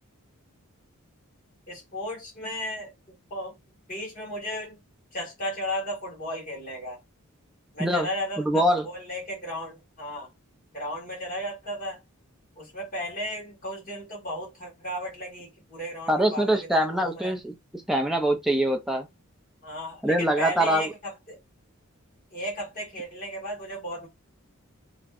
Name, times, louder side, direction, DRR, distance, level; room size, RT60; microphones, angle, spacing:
voice 1, 1.7-3.5 3.9-4.8 5.1-7.0 7.7-10.3 10.7-12.0 12.6-17.3 19.6-21.4 22.3-24.1, equal, 40° left, 1.4 m, -35 dB
voice 2, 8.4-8.9 16.1-19.1 20.0-20.9, right 1 dB, ahead, 0.3 m, -24 dB
2.6 x 2.0 x 2.4 m
head